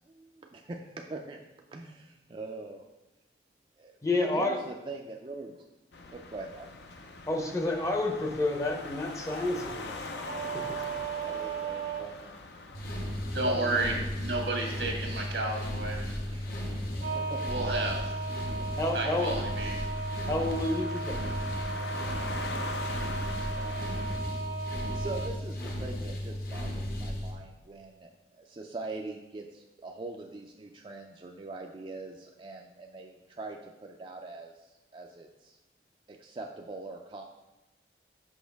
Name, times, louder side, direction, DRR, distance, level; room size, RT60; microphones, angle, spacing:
voice 1, 0.1-1.4 1.7-2.8 3.8-3.9 4.2-5.6 6.1-6.7 11.2-12.4 13.4-13.8 16.3-17.4 22.5-24.1 24.9-35.6 36.1-37.2, right 3 dB, 30° right, 1 dB, 0.3 m, -43 dB
voice 2, 4.0-4.6 7.3-10.1 10.5-10.9 18.8-19.3 20.2-21.2, left 2 dB, 15° left, 2 dB, 0.6 m, -30 dB
sound 1, 5.9-24.2, left 3 dB, 75° left, 0.6 m, -44 dB
sound 2, 10.2-12.1 17.0-25.3, right 5 dB, 70° right, 0.7 m, -37 dB
sound 3, 12.7-27.3, left 1 dB, 55° left, 0.9 m, -35 dB
voice 3, 13.3-16.2 17.5-18.0 18.9-19.9, right 2 dB, 90° right, 0 dB, 1.5 m, -31 dB
6.2 x 5.3 x 3.4 m, 1.1 s
head